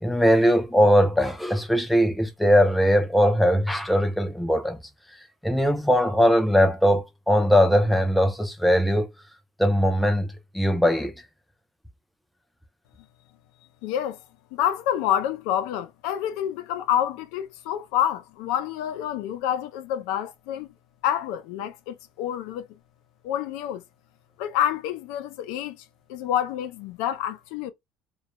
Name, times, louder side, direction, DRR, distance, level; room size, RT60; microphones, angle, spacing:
voice 1, 0.0-4.8 5.4-9.1 9.6-10.3 10.5-11.1, equal, ahead, 0.3 m, -20 dB
voice 2, 13.8-14.2 14.5-20.7 21.0-22.7 23.2-23.8 24.4-25.8 26.1-27.7, left 11 dB, 90° left, 0.4 m, -28 dB
2.3 x 2.0 x 2.8 m
cardioid pair, 165°, 0 cm